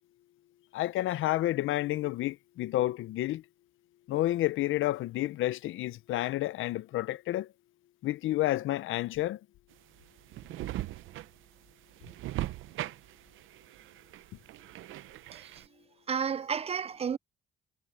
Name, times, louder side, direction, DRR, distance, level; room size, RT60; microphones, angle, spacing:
voice 1, 0.7-3.4 4.1-7.5 8.0-9.4, left 15 dB, 80° left, 0.7 m, -30 dB
sound 1, 9.7-15.7, right 15 dB, 85° right, 0.8 m, -40 dB
voice 2, 15.3-15.6 16.1-17.2, right 7 dB, 30° right, 0.3 m, -32 dB
cardioid pair, 90°, 20 cm